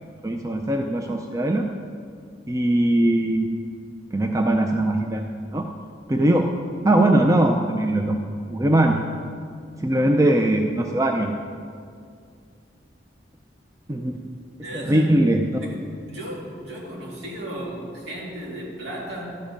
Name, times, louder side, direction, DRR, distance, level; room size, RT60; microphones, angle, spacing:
voice 1, 0.2-1.7 2.5-3.5 4.1-5.7 6.1-6.5 6.8-8.2 8.5-9.0 9.8-11.3 13.9-14.2 14.7-15.6, right 1 dB, 15° right, 3 dB, 0.4 m, -20 dB
voice 2, 14.6-15.1 15.6-15.8 16.1-19.4, right 1 dB, 60° right, -4 dB, 2.6 m, -35 dB
12.5 x 7.3 x 5.1 m, 2.3 s
head